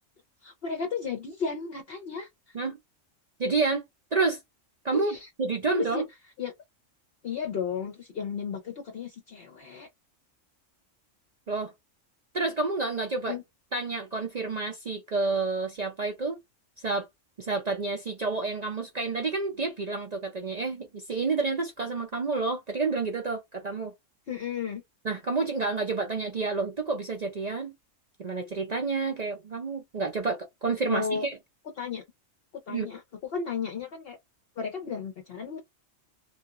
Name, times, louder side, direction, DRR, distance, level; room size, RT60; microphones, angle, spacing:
voice 1, 0.4-2.6 4.9-5.3 5.7-6.0 6.4-6.5 7.2-9.9 13.3-13.4 24.3-24.8 30.9-31.3 31.8-32.0 32.7-34.2 34.6-35.6, left 6 dB, 55° left, 0.8 m, -34 dB
voice 2, 3.4-3.8 4.1-4.4 4.8-6.1 11.5-11.7 12.3-13.3 13.7-16.4 16.8-17.1 17.4-23.9 25.0-27.7 28.2-31.3 32.7-32.9, right 3 dB, 50° right, 0.5 m, -29 dB
2.8 x 2.4 x 2.4 m
omnidirectional pair, 1.3 m